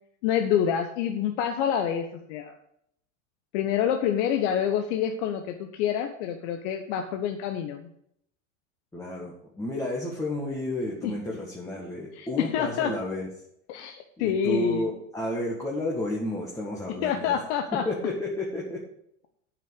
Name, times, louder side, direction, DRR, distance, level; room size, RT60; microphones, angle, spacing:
voice 1, 0.2-2.5 3.5-7.9 11.0-11.1 12.2-12.9 13.7-14.8 17.0-17.8, left 9 dB, 60° left, 5 dB, 1.2 m, -27 dB
voice 2, 8.9-13.3 14.2-17.4 17.9-18.8, left 1 dB, 10° left, -4 dB, 1.9 m, -31 dB
8.7 x 6.1 x 8.2 m, 0.72 s
supercardioid pair, 125°, 39 cm